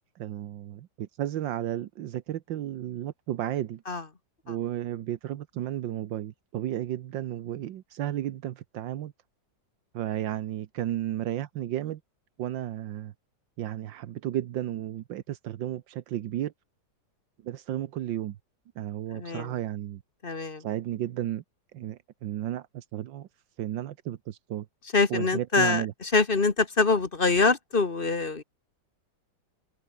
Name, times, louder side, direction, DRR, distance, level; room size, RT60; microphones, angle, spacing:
voice 1, 0.0-3.8 4.5-9.1 9.9-12.0 12.4-13.1 13.6-16.5 17.4-18.4 18.8-20.0 20.6-21.4 21.7-23.3 23.6-24.7 25.1-25.9, right 12 dB, 85° right, 1.6 m, -33 dB
voice 2, 19.1-19.5 20.2-20.6 24.9-28.4, left 4 dB, 30° left, 1.4 m, -24 dB
omnidirectional pair, 2.0 m